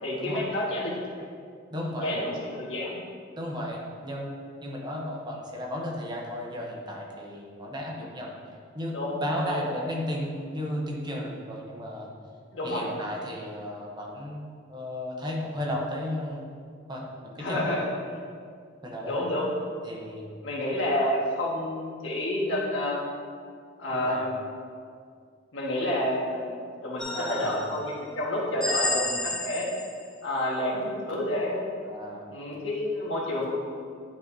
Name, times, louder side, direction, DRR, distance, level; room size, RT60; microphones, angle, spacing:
voice 1, 0.0-1.2 2.0-3.0 8.9-9.2 9.5-9.6 12.5-12.9 17.4-17.8 19.0-19.5 20.4-23.0 23.8-24.3 25.5-26.5 26.8-29.7 30.2-31.7 32.3-33.6, left 1 dB, 85° left, -4 dB, 1.6 m, -29 dB
voice 2, 1.7-2.2 3.4-4.3 4.6-8.4 8.7-12.1 12.6-14.4 14.7-16.4 16.9-17.8 18.8-19.2 19.8-20.3 23.9-24.2 27.1-27.8 28.8-29.1 31.8-32.3, left 1 dB, 25° right, -2 dB, 0.9 m, -34 dB
sound 1, 27.0-27.8 28.6-30.1, left 2 dB, 5° left, 0.9 m, -31 dB
10.5 x 4.8 x 2.8 m, 2.2 s
head